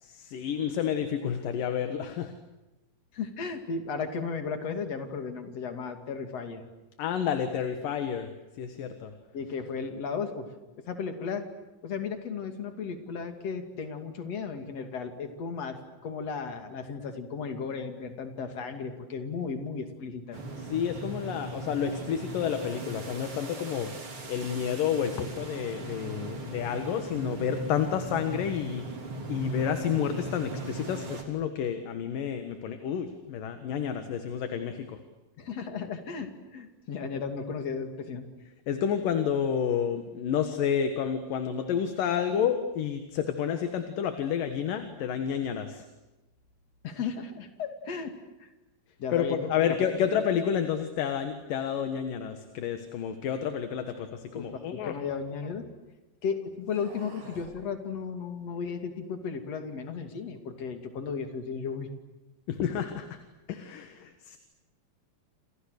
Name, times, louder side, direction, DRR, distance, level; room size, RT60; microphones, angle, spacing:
voice 1, 0.0-2.3 7.0-8.3 8.6-9.1 20.7-23.9 24.3-28.9 29.3-35.0 38.7-45.8 49.1-55.0 62.5-63.1 63.5-64.4, left 8 dB, 65° left, 8 dB, 3.0 m, -30 dB
voice 2, 3.1-6.6 9.3-10.5 10.8-11.4 11.8-20.4 35.4-38.2 46.8-48.1 48.4-48.5 49.0-49.8 54.3-55.7 56.2-61.9, left 5 dB, 45° left, 6 dB, 3.4 m, -35 dB
sound 1, 20.3-31.2, right 2 dB, 35° right, 3.9 m, -38 dB
sound 2, 54.3-55.8 56.5-57.6, right 2 dB, 65° right, 7.1 m, -51 dB
29.5 x 27.5 x 6.7 m, 1.0 s
omnidirectional pair, 4.3 m